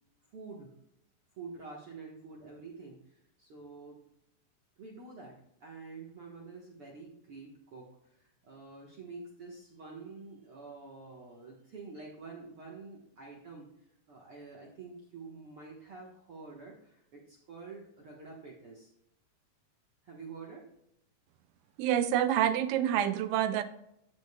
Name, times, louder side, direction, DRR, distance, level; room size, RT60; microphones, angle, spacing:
voice 1, 0.3-0.7 1.4-4.0 4.8-5.3 5.6-13.7 14.1-18.9 20.0-20.7 21.6-21.7, right 4 dB, 55° right, -2 dB, 1.7 m, -48 dB
voice 2, 21.8-23.6, right 10 dB, 80° right, 12 dB, 2.1 m, -27 dB
16.0 x 5.4 x 2.3 m, 0.78 s
omnidirectional pair, 4.1 m